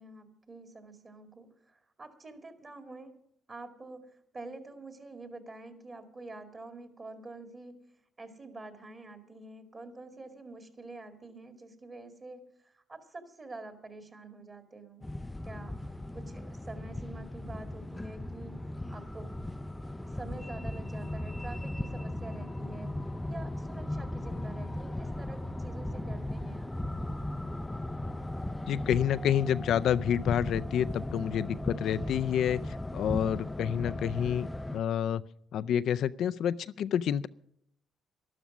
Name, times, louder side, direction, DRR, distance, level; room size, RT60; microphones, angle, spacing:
voice 1, 0.0-3.1 3.5-7.8 8.2-15.0 15.4-15.7 16.1-19.3 20.1-22.9 23.3-26.8, right 2 dB, 35° right, 6 dB, 2.2 m, -47 dB
sound 1, 15.0-34.8, left 1 dB, 10° left, 0.5 m, -37 dB
voice 2, 28.7-35.2 35.5-37.3, left 9 dB, 75° left, 15 dB, 0.5 m, -29 dB
12.5 x 12.0 x 6.1 m, 0.72 s
cardioid pair, 90°, 0 cm